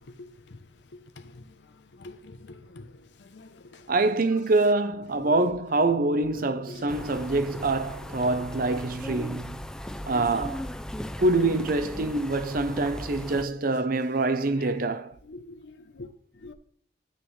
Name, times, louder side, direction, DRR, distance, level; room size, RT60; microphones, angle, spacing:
voice 1, 0.0-3.9 5.1-5.5 6.3-7.2 13.2-13.3 14.2-14.3 14.6-14.8 15.2-16.5, left 2 dB, 75° left, 0.7 m, -46 dB
voice 2, 3.9-9.6 10.0-10.6 11.2-15.2, right 2 dB, 50° right, 0.7 m, -25 dB
sound 1, 6.9-13.4, left 1 dB, 5° left, 0.4 m, -37 dB
13.0 x 7.5 x 3.2 m
head